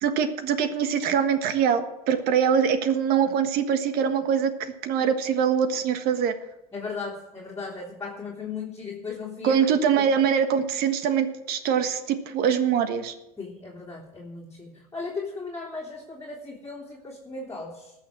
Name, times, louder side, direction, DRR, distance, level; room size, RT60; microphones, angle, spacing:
voice 1, 0.0-6.3 9.4-13.1, right 7 dB, 55° right, 9 dB, 1.5 m, -23 dB
voice 2, 6.7-9.7 10.0-10.1 13.4-17.9, left 4 dB, 15° left, -4 dB, 3.3 m, -36 dB
19.5 x 6.5 x 6.1 m, 0.91 s
hypercardioid pair, 80°, 19 cm